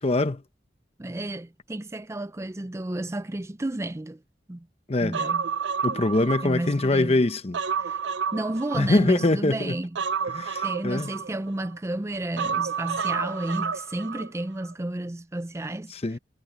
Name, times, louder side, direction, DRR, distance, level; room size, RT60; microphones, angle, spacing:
voice 1, 0.0-0.4 4.9-5.2 5.8-7.6 8.8-9.8 10.3-11.1 15.9-16.2, left 2 dB, 35° left, 0.8 m, -23 dB
voice 2, 1.0-4.2 4.5-4.7 5.0-5.5 6.4-7.2 7.8-8.0 8.3-9.9 10.6-15.9, right 1 dB, 15° right, 0.5 m, -32 dB
Human voice, 5.1-6.9 7.3-9.3 10.0-11.7 12.4-14.3 14.6-14.7, right 6 dB, 80° right, 0.5 m, -30 dB
head